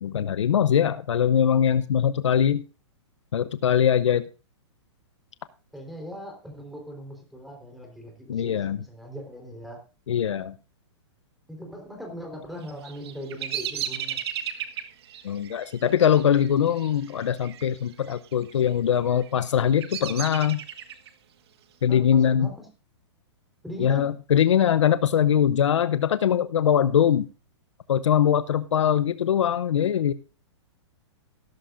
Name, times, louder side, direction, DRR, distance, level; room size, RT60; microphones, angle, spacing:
voice 1, 0.0-2.6 3.3-4.2 8.3-8.8 10.1-10.5 15.2-20.6 21.8-22.5 23.8-27.3 27.9-30.1, left 9 dB, 80° left, 13 dB, 0.7 m, -22 dB
voice 2, 5.7-9.8 11.5-14.2 21.9-22.7 23.6-24.2, equal, ahead, 2 dB, 4.0 m, -39 dB
Bird vocalization bird call bird song, 12.6-17.7 17.9-18.5 19.1-21.1, right 10 dB, 60° right, 1.3 m, -35 dB
15.5 x 13.5 x 2.6 m, 0.34 s
hypercardioid pair, 135°, 15 cm